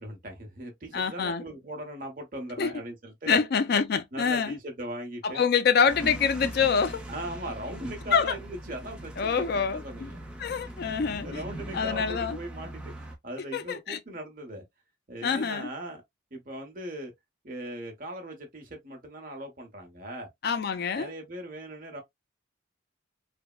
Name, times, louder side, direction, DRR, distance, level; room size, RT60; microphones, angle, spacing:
voice 1, 0.0-3.4 4.1-5.4 7.1-10.2 10.8-14.6 15.1-16.0 16.3-17.1 17.4-20.3 20.9-22.0, right 1 dB, 45° right, 1.0 m, -39 dB
voice 2, 0.9-1.4 2.6-2.7 3.3-4.6 5.2-7.1 8.1-8.4 9.2-10.1 10.4-11.4 11.7-12.4 13.5-14.0 15.2-15.7 20.4-21.1, left 6 dB, 50° left, 0.4 m, -26 dB
sound 1, 5.9-13.2, right 1 dB, 5° right, 0.6 m, -40 dB
3.3 x 2.1 x 2.3 m
head